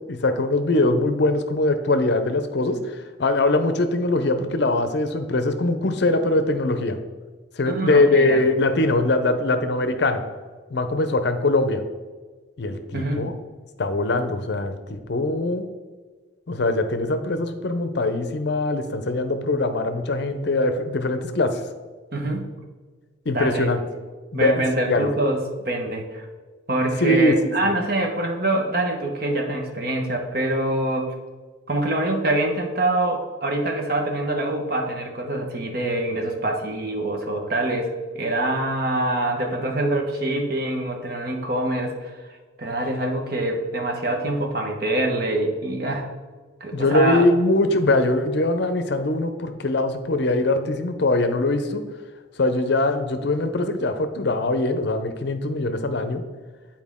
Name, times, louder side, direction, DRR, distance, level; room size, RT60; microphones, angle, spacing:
voice 1, 0.0-7.0 7.6-10.2 10.7-11.8 12.6-13.3 13.8-15.7 16.5-21.6 23.3-23.8 24.3-24.5 24.9-25.1 27.0-27.7 46.7-51.8 52.4-56.2, left 2 dB, 55° left, 9 dB, 0.6 m, -22 dB
voice 2, 7.6-8.4 12.9-13.3 22.1-22.5 23.3-24.0 24.3-26.2 26.7-31.1 31.7-42.2 42.6-46.1 46.6-47.2, right 1 dB, 50° right, 2 dB, 1.0 m, -25 dB
9.5 x 4.4 x 3.6 m, 1.4 s
head